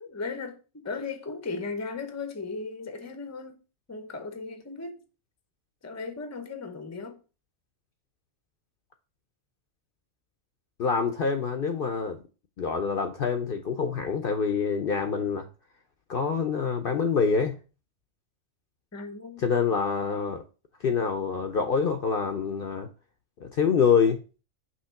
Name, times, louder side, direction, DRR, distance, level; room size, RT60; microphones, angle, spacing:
voice 1, 0.0-3.6 3.9-5.0 5.8-7.2 18.9-19.5, left 4 dB, 15° left, 0.6 m, -36 dB
voice 2, 10.8-12.2 12.6-15.5 16.1-17.6 19.4-20.4 20.8-22.9 23.4-24.2, left 6 dB, 55° left, 0.7 m, -26 dB
5.7 x 3.1 x 5.6 m
omnidirectional pair, 1.3 m